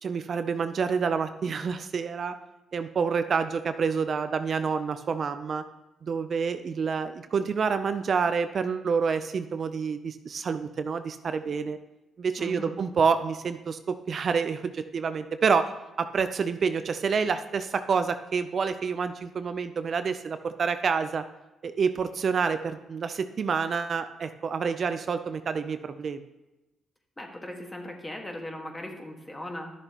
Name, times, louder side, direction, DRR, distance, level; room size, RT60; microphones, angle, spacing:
voice 1, 0.0-2.4 2.7-5.6 6.0-11.8 12.2-15.7 16.0-21.2 21.6-26.2, right 5 dB, 50° right, 10 dB, 0.5 m, -28 dB
voice 2, 12.4-12.8 27.2-29.7, left 1 dB, 20° left, 2 dB, 1.6 m, -38 dB
12.0 x 6.7 x 3.0 m, 1.0 s
cardioid pair, 80°, 0 cm